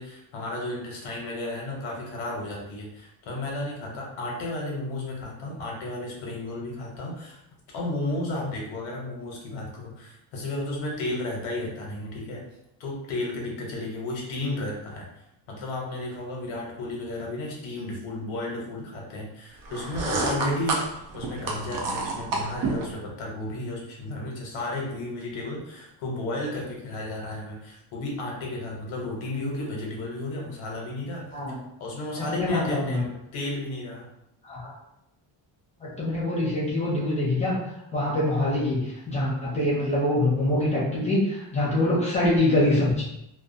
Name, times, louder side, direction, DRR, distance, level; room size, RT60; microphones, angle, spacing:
voice 1, 0.0-7.4 7.7-12.4 12.8-15.0 15.5-20.9 21.1-33.0 33.3-34.1, left 2 dB, 90° left, -2 dB, 0.9 m, -33 dB
sound 1, 19.6-22.9, right 3 dB, 50° right, 0.4 m, -29 dB
voice 2, 32.2-33.0 34.4-34.7 35.8-37.6 37.9-43.0, left 1 dB, 15° left, -6 dB, 0.6 m, -24 dB
2.3 x 2.3 x 2.6 m, 0.84 s
cardioid pair, 175°, 46 cm